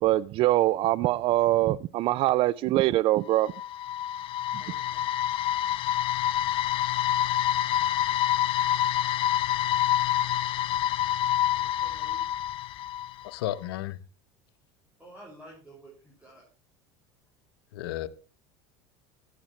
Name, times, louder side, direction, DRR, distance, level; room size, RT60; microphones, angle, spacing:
voice 1, 0.0-3.5, right 15 dB, 45° right, 0.4 m, -23 dB
sound 1, 3.3-13.3, left 11 dB, 45° left, 0.7 m, -27 dB
voice 2, 4.6-5.2 11.5-12.5 15.0-16.5, right 1 dB, 10° right, 5.8 m, -52 dB
voice 3, 13.2-14.0 17.7-18.1, left 14 dB, 85° left, 1.0 m, -33 dB
14.5 x 10.0 x 3.2 m
supercardioid pair, 115°, 12 cm